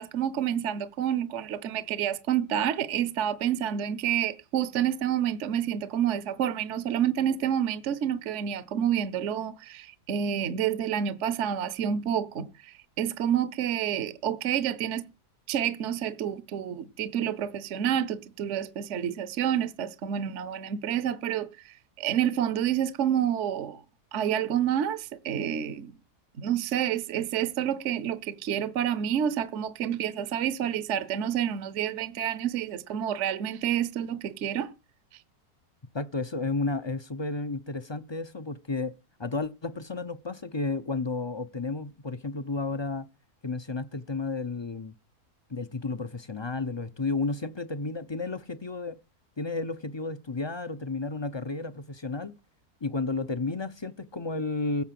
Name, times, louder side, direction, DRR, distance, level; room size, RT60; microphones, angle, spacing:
voice 1, 0.0-15.1 15.5-23.8 24.1-25.9 26.4-34.7, right 9 dB, 55° right, 1.1 m, -29 dB
voice 2, 35.9-38.9 39.2-43.1 43.4-44.9 45.5-49.0 49.4-52.3 52.8-54.8, left 3 dB, 30° left, 0.5 m, -32 dB
16.0 x 7.0 x 7.6 m
omnidirectional pair, 1.7 m